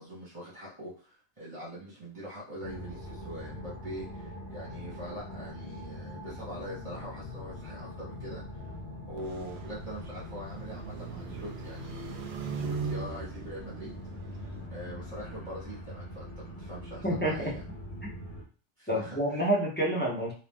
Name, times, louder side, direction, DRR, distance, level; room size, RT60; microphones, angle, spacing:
voice 1, 0.0-8.8 9.1-14.0 14.7-17.6 18.8-19.4, equal, 25° right, -8 dB, 1.2 m, -43 dB
sound 1, 2.6-18.4, left 1 dB, 45° left, 1.0 m, -43 dB
sound 2, 9.2-14.7, right 4 dB, 65° right, 0.8 m, -39 dB
voice 2, 17.0-17.6 18.9-20.3, right 1 dB, 10° left, -4 dB, 0.8 m, -28 dB
2.9 x 2.8 x 3.6 m, 0.38 s
omnidirectional pair, 1.2 m